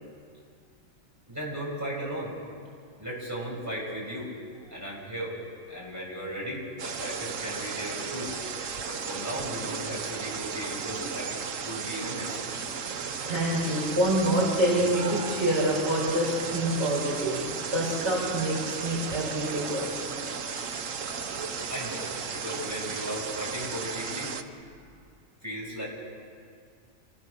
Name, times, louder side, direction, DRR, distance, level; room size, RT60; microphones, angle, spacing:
voice 1, 1.3-2.3 3.0-4.3 4.7-5.3 5.7-8.3 8.9-11.3 11.6-12.4 21.7-24.4 25.4-25.9, equal, 10° right, -5 dB, 7.1 m, -36 dB
sound 1, 6.8-24.4, right 6 dB, 75° right, 1.4 m, -35 dB
voice 2, 13.2-20.0, right 1 dB, 55° right, -4 dB, 4.7 m, -27 dB
29.0 x 16.0 x 6.8 m, 2.2 s
omnidirectional pair, 1.4 m